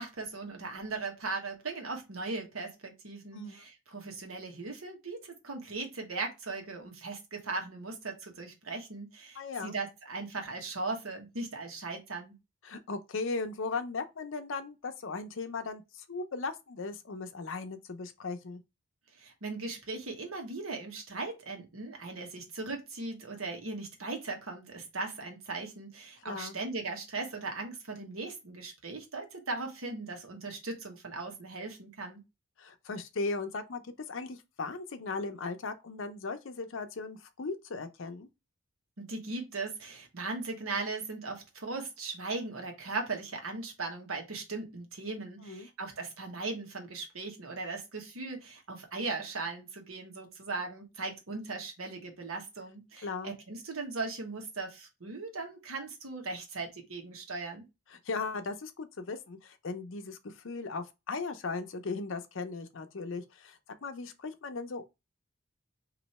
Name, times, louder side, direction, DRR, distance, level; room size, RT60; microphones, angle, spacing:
voice 1, 0.0-12.3 19.1-32.2 39.0-57.6, right 3 dB, 85° right, 1.2 m, -38 dB
voice 2, 3.3-3.6 9.3-9.7 12.6-18.6 26.2-26.5 32.6-38.3 45.4-45.7 53.0-53.3 57.9-64.9, left 4 dB, 70° left, 0.6 m, -37 dB
3.0 x 2.7 x 4.0 m
head